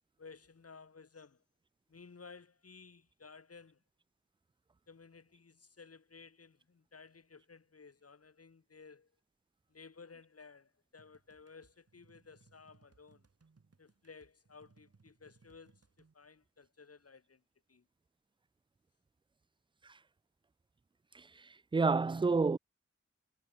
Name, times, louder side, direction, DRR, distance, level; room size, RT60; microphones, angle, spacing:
voice 1, 0.2-1.4 1.9-3.8 4.9-9.1 9.7-13.2 13.8-17.4 17.7-17.8, left 5 dB, 55° left, 1.6 m, -56 dB
sound 1, 11.0-16.1, right 4 dB, 55° right, 4.4 m, -68 dB
voice 2, 21.1-22.6, right 4 dB, 15° right, 0.3 m, -30 dB
wide cardioid pair, 90°, 29 cm